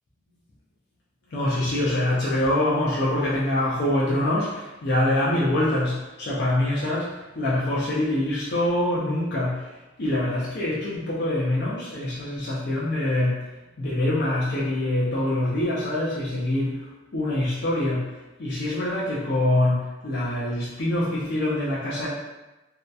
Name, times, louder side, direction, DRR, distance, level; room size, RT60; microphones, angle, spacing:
voice 1, 1.3-9.7 10.0-13.4 13.8-18.1 18.4-22.1, left 1 dB, 55° left, -7 dB, 0.5 m, -25 dB
2.7 x 2.1 x 2.2 m, 1.1 s
head